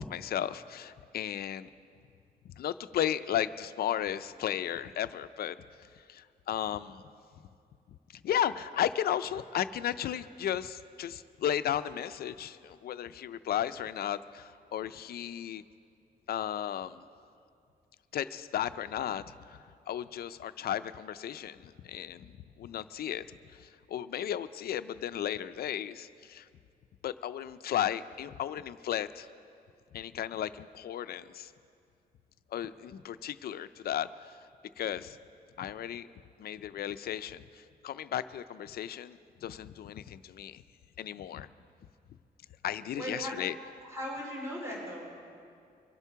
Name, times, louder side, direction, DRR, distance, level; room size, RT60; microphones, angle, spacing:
voice 1, 0.0-1.7 2.4-5.6 6.1-7.0 8.2-15.6 16.3-17.0 18.1-19.6 19.9-23.3 23.5-26.5 27.0-29.3 29.9-31.5 32.5-34.4 34.8-35.2 35.6-36.1 36.4-40.6 41.0-41.5 42.6-43.6, left 10 dB, 70° left, 13 dB, 0.5 m, -34 dB
voice 2, 42.9-43.3 43.8-45.1, equal, 15° right, -4 dB, 4.3 m, -38 dB
24.0 x 8.2 x 5.7 m, 2.3 s
wide cardioid pair, 160°, 17 cm